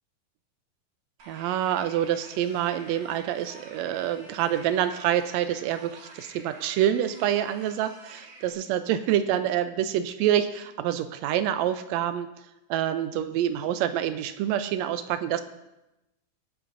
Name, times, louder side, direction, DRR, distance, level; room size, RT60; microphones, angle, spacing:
sound 1, 1.2-8.5, right 2 dB, 60° right, 3.1 m, -49 dB
voice 1, 1.3-12.3 12.7-15.4, right 11 dB, 85° right, 10 dB, 1.5 m, -27 dB
23.5 x 8.0 x 2.6 m, 0.95 s
omnidirectional pair, 3.7 m